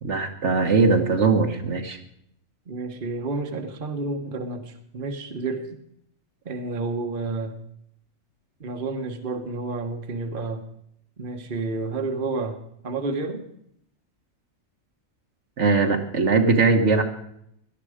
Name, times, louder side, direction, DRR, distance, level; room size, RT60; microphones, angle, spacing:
voice 1, 0.0-2.0 15.6-17.0, right 4 dB, 60° right, 5 dB, 1.5 m, -20 dB
voice 2, 2.7-5.6 6.4-7.6 8.6-10.7 11.2-13.4, right 3 dB, 40° right, 5 dB, 1.3 m, -30 dB
17.5 x 12.0 x 5.0 m, 0.72 s
omnidirectional pair, 1.4 m